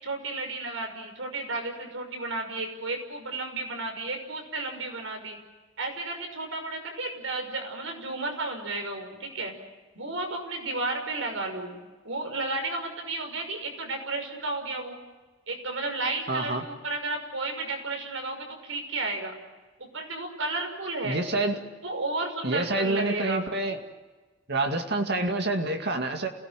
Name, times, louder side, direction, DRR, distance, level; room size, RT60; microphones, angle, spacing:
voice 1, 0.0-5.4 5.8-9.5 9.9-11.8 12.0-15.0 15.5-19.3 19.8-21.2 21.8-23.4, right 2 dB, 85° right, 5 dB, 5.9 m, -33 dB
voice 2, 16.3-16.6 21.0-21.6 22.4-23.8 24.5-26.3, right 2 dB, 60° right, 4 dB, 2.2 m, -27 dB
28.0 x 18.5 x 9.1 m, 1.3 s
head